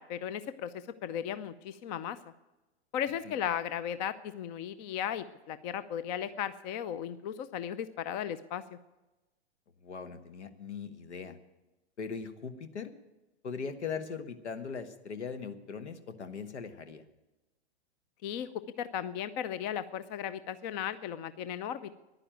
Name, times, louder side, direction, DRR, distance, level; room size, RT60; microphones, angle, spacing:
voice 1, 0.0-2.2 2.9-8.8 18.2-21.9, left 9 dB, 40° left, 15 dB, 0.7 m, -36 dB
voice 2, 9.8-11.4 12.0-12.9 13.4-17.0, left 5 dB, 80° left, 11 dB, 1.4 m, -40 dB
11.0 x 9.9 x 8.8 m, 1.1 s
hypercardioid pair, 115°, 34 cm